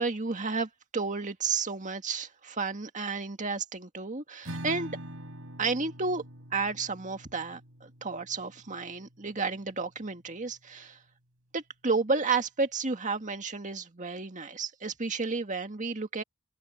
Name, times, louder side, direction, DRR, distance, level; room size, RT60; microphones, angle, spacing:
voice 1, 0.0-5.0 5.6-6.2 6.5-11.0 11.5-16.2, right 4 dB, 35° right, 1.9 m, -32 dB
Acoustic guitar / Strum, 4.4-9.9, right 1 dB, 65° right, 7.9 m, -45 dB
open air
head